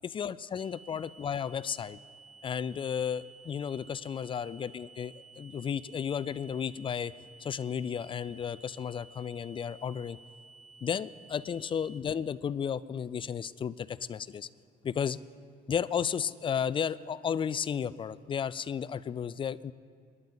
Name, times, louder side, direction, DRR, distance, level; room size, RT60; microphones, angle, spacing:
voice 1, 0.0-2.0 2.4-7.1 7.4-10.2 10.8-14.5 14.8-15.2 15.7-19.7, left 7 dB, 30° left, 16 dB, 0.4 m, -33 dB
sound 1, 0.6-12.0, right 4 dB, 50° right, 1.6 m, -54 dB
27.0 x 11.0 x 4.0 m, 2.2 s
cardioid pair, 110°, 17 cm